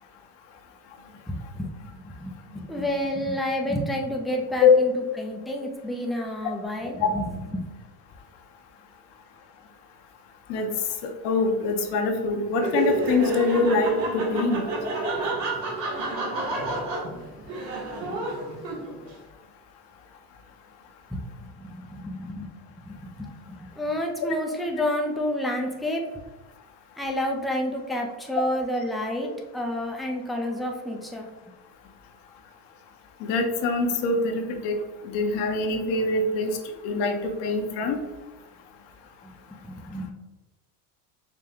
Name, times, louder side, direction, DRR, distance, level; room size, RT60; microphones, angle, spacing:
voice 1, 1.3-7.7 21.1-21.2 21.6-22.5 22.8-26.0 27.0-31.3 39.2-39.3 39.6-40.1, left 1 dB, ahead, 0 dB, 0.3 m, -30 dB
voice 2, 11.2-14.6 33.2-34.7 35.1-36.5 36.8-38.0, left 4 dB, 60° left, 3 dB, 0.9 m, -24 dB
Laughter, 12.5-19.1, right 2 dB, 80° right, 1.3 m, -29 dB
5.1 x 2.2 x 3.5 m, 1.1 s
supercardioid pair, 100°, 47 cm